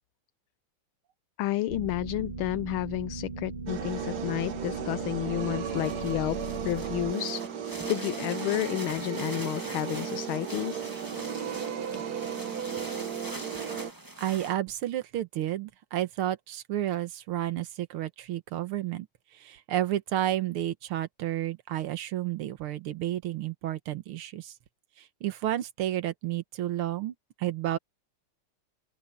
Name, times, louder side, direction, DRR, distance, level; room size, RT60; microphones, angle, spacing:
voice 1, 1.4-6.4 6.6-7.4 7.9-10.9, left 16 dB, 75° left, 1.4 m, -31 dB
sound 1, 1.7-7.1, right 4 dB, 30° right, 1.3 m, -38 dB
sound 2, 3.7-13.9, right 7 dB, 55° right, 1.4 m, -35 dB
sound 3, 5.6-14.5, right 1 dB, 10° right, 1.3 m, -43 dB
voice 2, 14.2-19.1 19.3-24.5 25.0-27.8, right 13 dB, 80° right, 2.0 m, -31 dB
open air
omnidirectional pair, 2.4 m